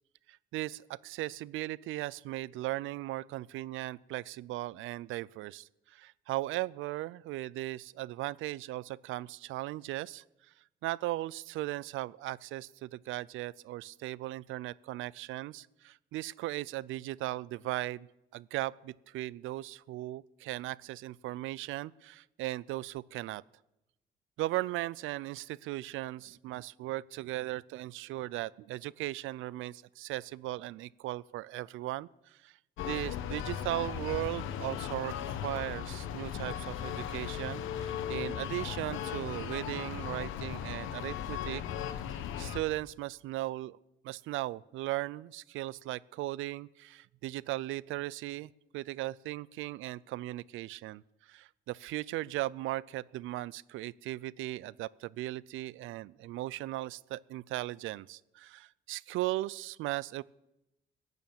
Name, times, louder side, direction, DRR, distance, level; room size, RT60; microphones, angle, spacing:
voice 1, 0.3-10.2 10.8-18.1 18.3-23.4 24.4-32.6 32.8-41.6 42.1-43.8 44.0-60.2, right 16 dB, 85° right, 23 dB, 0.4 m, -37 dB
sound 1, 32.8-42.6, left 9 dB, 90° left, 1.0 m, -37 dB
16.0 x 9.1 x 7.2 m, 0.92 s
cardioid pair, 90°, 20 cm